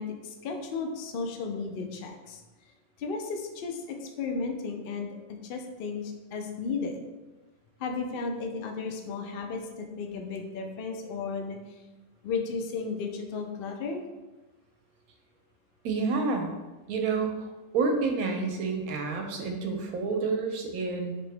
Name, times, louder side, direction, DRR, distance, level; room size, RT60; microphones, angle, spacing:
voice 1, 0.0-2.4 3.0-5.2 5.4-7.0 7.8-11.6 12.2-14.0, left 4 dB, 80° left, 4 dB, 0.5 m, -34 dB
voice 2, 15.8-16.5 16.9-21.2, right 4 dB, 80° right, 3 dB, 1.1 m, -29 dB
4.0 x 2.8 x 3.3 m, 1.1 s
omnidirectional pair, 1.5 m